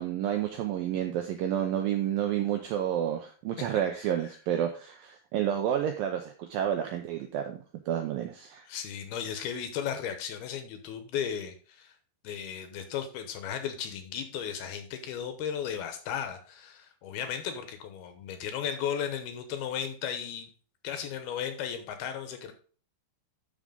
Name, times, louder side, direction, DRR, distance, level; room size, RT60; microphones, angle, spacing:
voice 1, 0.0-7.6 7.9-8.6, right 10 dB, 85° right, 5 dB, 2.0 m, -30 dB
voice 2, 8.7-11.9 12.2-20.5 20.8-22.5, left 8 dB, 75° left, 8 dB, 2.7 m, -35 dB
13.0 x 4.9 x 3.8 m, 0.40 s
omnidirectional pair, 5.0 m